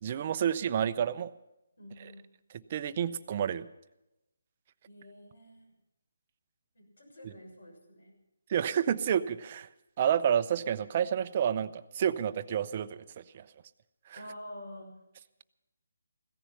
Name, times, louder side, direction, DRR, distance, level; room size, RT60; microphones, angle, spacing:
voice 1, 0.0-1.3 2.0-2.1 2.7-3.7 7.2-7.3 8.5-9.7 10.0-13.5 14.1-14.2, right 9 dB, 35° right, 12 dB, 0.6 m, -29 dB
voice 2, 1.8-2.2 4.9-5.7 6.7-8.1 14.1-15.0, left 1 dB, 70° left, 2 dB, 6.8 m, -48 dB
16.5 x 14.0 x 5.8 m, 0.93 s
figure-of-eight pair, 155°, 0 cm